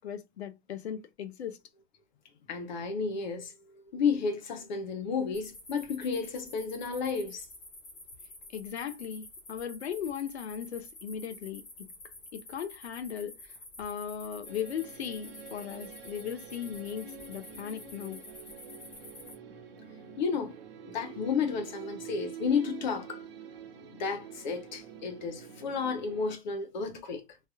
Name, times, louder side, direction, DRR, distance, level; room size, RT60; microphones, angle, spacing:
voice 1, 0.0-1.6 8.5-11.9 12.3-18.2, left 8 dB, 85° left, 0.7 m, -38 dB
voice 2, 2.5-3.5 3.9-7.5 20.2-20.6 20.9-23.2 24.0-27.2, left 5 dB, 45° left, 0.8 m, -32 dB
sound 1, 5.3-19.3, left 2 dB, 10° left, 0.6 m, -49 dB
sound 2, 14.4-26.3, right 7 dB, 65° right, 1.0 m, -46 dB
3.3 x 2.7 x 2.3 m
hypercardioid pair, 150°, 32 cm